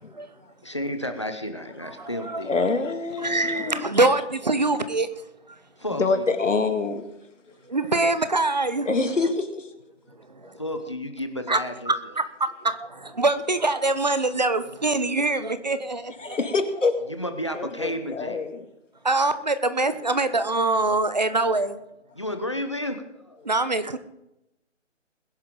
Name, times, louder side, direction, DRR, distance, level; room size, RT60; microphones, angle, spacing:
voice 1, 0.6-2.5 5.8-6.3 10.6-11.9 17.1-18.4 22.1-23.4, left 1 dB, 25° left, 7 dB, 0.8 m, -32 dB
voice 2, 1.8-2.4 3.2-5.1 7.7-8.9 10.3-10.6 11.5-11.6 11.9-12.0 12.4-16.4 19.0-21.8 23.4-24.0, right 2 dB, 35° right, 12 dB, 0.8 m, -24 dB
voice 3, 2.4-3.8 6.0-7.1 8.9-9.7 16.2-16.9 17.5-18.6, left 3 dB, 75° left, 7 dB, 2.2 m, -25 dB
21.0 x 10.5 x 3.8 m, 0.89 s
hypercardioid pair, 175°, 37 cm